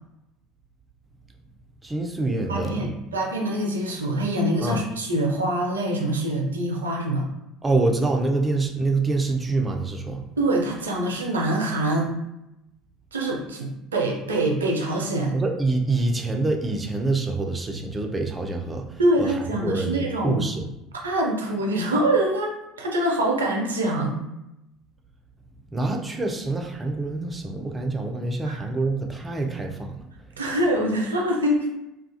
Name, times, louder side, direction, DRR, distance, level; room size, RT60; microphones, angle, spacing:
voice 1, 1.8-2.9 4.6-4.8 7.6-10.2 15.3-20.6 25.7-30.0, right 3 dB, 20° right, 2 dB, 0.4 m, -26 dB
voice 2, 2.5-7.3 10.4-12.1 13.1-15.4 19.0-20.4 21.0-24.2 28.4-28.6 30.4-31.7, right 1 dB, 80° right, 0 dB, 0.5 m, -24 dB
2.4 x 2.3 x 2.6 m, 0.89 s
figure-of-eight pair, 65°, 0 cm